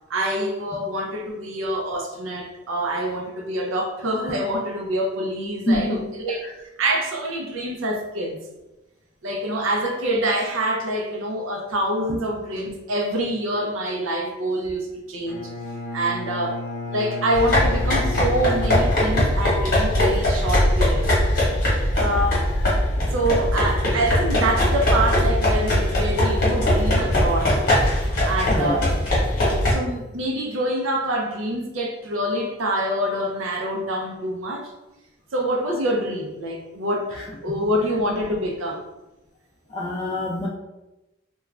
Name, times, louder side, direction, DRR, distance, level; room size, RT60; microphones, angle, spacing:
voice 1, 0.1-6.5 6.8-8.4 9.2-15.5 15.9-16.6 16.9-21.1 21.9-22.5 23.1-27.6 28.2-28.8 29.7-34.7 35.3-38.8, right 1 dB, 85° right, 1 dB, 0.5 m, -26 dB
voice 2, 5.7-6.1 22.1-22.3 28.5-28.9 37.5-37.6 39.7-40.5, left 1 dB, 25° left, -6 dB, 0.3 m, -25 dB
Bowed string instrument, 15.3-19.5, left 2 dB, 65° left, 0.6 m, -33 dB
sound 1, 17.3-29.7, left 1 dB, 45° left, 1.0 m, -21 dB
2.4 x 2.2 x 3.1 m, 1.0 s
head